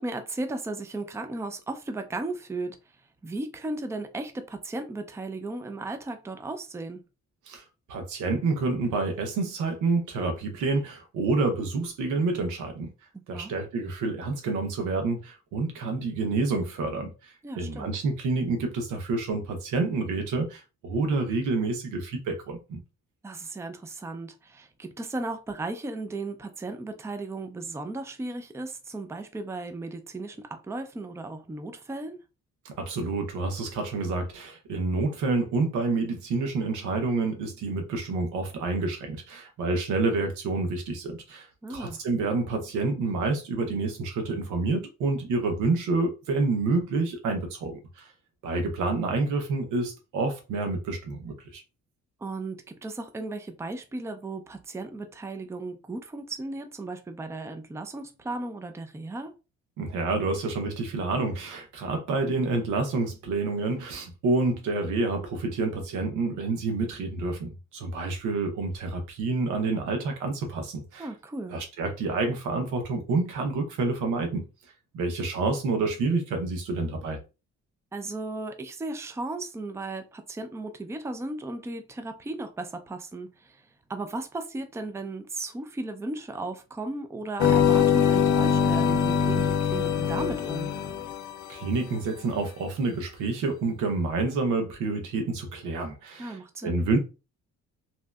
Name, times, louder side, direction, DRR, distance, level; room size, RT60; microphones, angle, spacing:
voice 1, 0.0-2.8 3.2-7.0 13.3-13.5 17.4-17.9 23.2-32.2 41.6-42.0 52.2-52.6 52.8-59.3 71.0-71.5 77.9-83.6 83.9-90.7 96.2-96.8, right 2 dB, 10° right, 0.4 m, -35 dB
voice 2, 7.9-12.9 13.3-17.1 17.6-22.8 32.6-48.1 48.4-51.6 59.8-71.1 71.5-74.4 74.9-77.2 91.5-96.4 96.6-97.0, right 3 dB, 90° right, 0.9 m, -28 dB
sound 1, 87.4-91.6, left 7 dB, 75° left, 0.6 m, -23 dB
3.0 x 2.7 x 2.3 m
cardioid pair, 90°, 30 cm